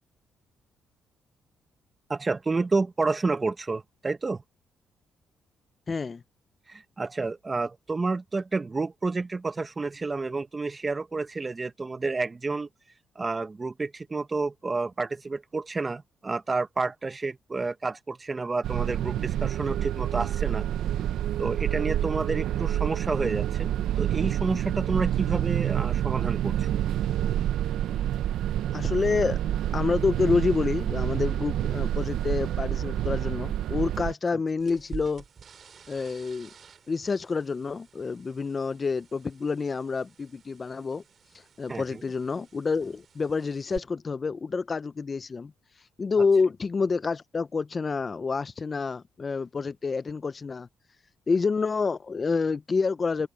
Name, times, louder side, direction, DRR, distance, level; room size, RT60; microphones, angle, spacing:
voice 1, 2.1-4.4 6.7-12.7 13.1-20.7 21.4-23.7 24.0-26.7 34.3-34.4 41.7-42.0, right 3 dB, 25° right, 1.5 m, -30 dB
voice 2, 5.9-6.2 28.7-29.4 29.7-35.2 35.9-36.5 36.9-41.0 41.6-45.5 46.0-50.7 51.3-53.3, left 4 dB, 35° left, 0.6 m, -28 dB
sound 1, 18.6-34.1, right 11 dB, 80° right, 0.7 m, -28 dB
sound 2, 34.6-43.8, right 7 dB, 50° right, 4.5 m, -49 dB
open air
cardioid pair, 90°, 0 cm